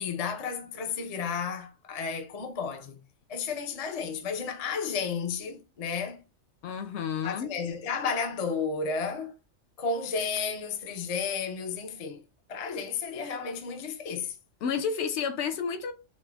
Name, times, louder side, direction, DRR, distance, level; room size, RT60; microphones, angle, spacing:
voice 1, 0.0-3.0 3.3-6.2 7.2-9.3 9.8-12.2 12.5-14.4, left 5 dB, 45° left, 0.5 m, -32 dB
voice 2, 6.6-7.5 14.6-15.9, left 6 dB, 70° left, 0.8 m, -30 dB
5.0 x 2.1 x 2.2 m
omnidirectional pair, 1.3 m